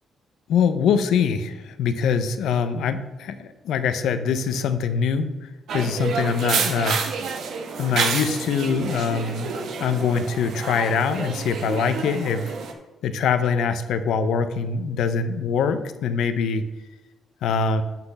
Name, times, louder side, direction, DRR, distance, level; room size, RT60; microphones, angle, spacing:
voice 1, 0.5-5.3 5.7-7.0 7.8-9.5 9.8-12.5 13.0-16.6 17.4-17.8, left 6 dB, 80° left, 10 dB, 0.7 m, -23 dB
sound 1, 5.7-12.7, right 5 dB, 70° right, 1.1 m, -29 dB
6.0 x 5.9 x 6.6 m, 1.2 s
cardioid pair, 90°, 0 cm